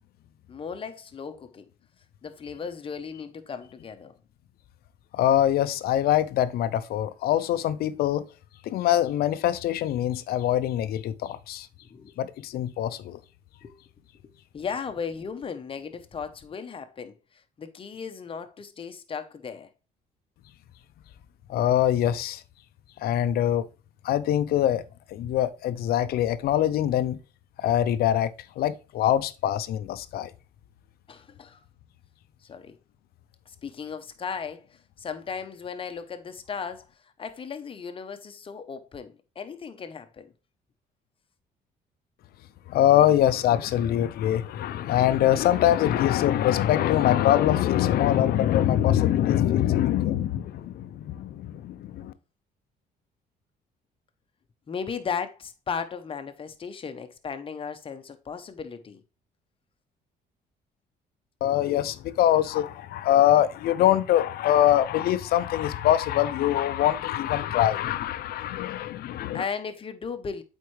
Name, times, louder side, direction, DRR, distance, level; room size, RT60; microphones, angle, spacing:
voice 1, 0.5-1.7 2.2-4.2 11.8-12.2 12.8-13.0 13.6-13.7 14.5-19.7 31.1-31.6 32.4-32.8 33.5-36.9 37.2-40.3 54.7-59.0 69.3-70.4, left 6 dB, 30° left, 0.9 m, -36 dB
voice 2, 5.1-8.3 8.6-11.7 12.2-13.2 21.5-22.4 23.0-23.7 24.0-24.8 25.1-27.2 27.6-28.3 28.6-30.3 42.7-52.1 61.4-69.4, left 12 dB, 65° left, 0.6 m, -23 dB
8.3 x 4.4 x 3.2 m
cardioid pair, 110°, 17 cm